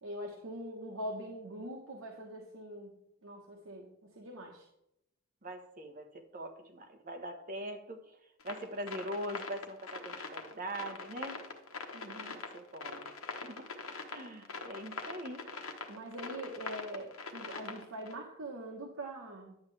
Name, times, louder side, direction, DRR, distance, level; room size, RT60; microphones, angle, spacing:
voice 1, 0.0-3.0 3.2-4.7 11.9-12.4 15.9-19.6, right 1 dB, 70° right, 0 dB, 1.3 m, -43 dB
voice 2, 5.4-8.0 8.4-11.4 12.3-13.1 13.4-13.8 14.1-15.5, right 1 dB, 40° right, 5 dB, 1.2 m, -42 dB
sound 1, 8.4-18.1, left 4 dB, 90° left, 1.2 m, -43 dB
10.5 x 8.2 x 3.4 m, 0.81 s
head